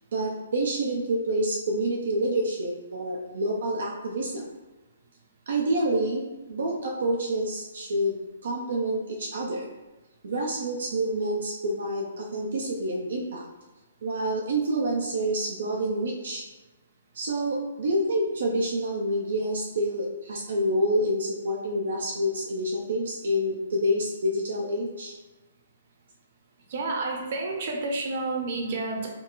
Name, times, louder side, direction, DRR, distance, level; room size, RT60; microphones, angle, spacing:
voice 1, 0.1-4.5 5.5-9.7 10.2-13.4 14.0-16.4 17.1-25.1, right 1 dB, 70° right, -2 dB, 0.6 m, -28 dB
voice 2, 26.7-29.1, right 3 dB, 45° right, 0 dB, 0.9 m, -30 dB
4.5 x 2.0 x 3.9 m, 1.1 s
hypercardioid pair, 160°, 0 cm